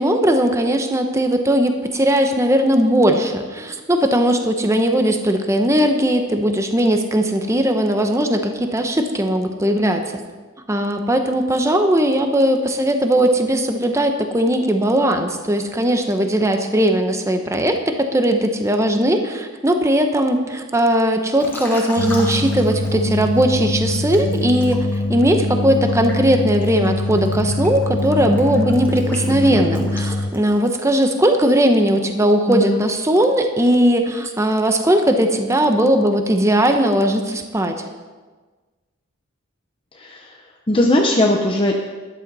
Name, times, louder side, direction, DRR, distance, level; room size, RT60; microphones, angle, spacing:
voice 1, 0.0-10.1 10.7-37.8, right 1 dB, 15° right, 5 dB, 0.8 m, -18 dB
Liquid, 21.4-23.4 23.9-30.9, left 1 dB, 10° left, 1.8 m, -35 dB
sound 1, 22.0-30.3, left 2 dB, 75° left, 0.8 m, -23 dB
voice 2, 32.5-32.8 39.9-40.4 40.7-41.7, left 1 dB, 25° left, 1 dB, 0.8 m, -18 dB
13.0 x 11.5 x 4.2 m, 1.3 s
head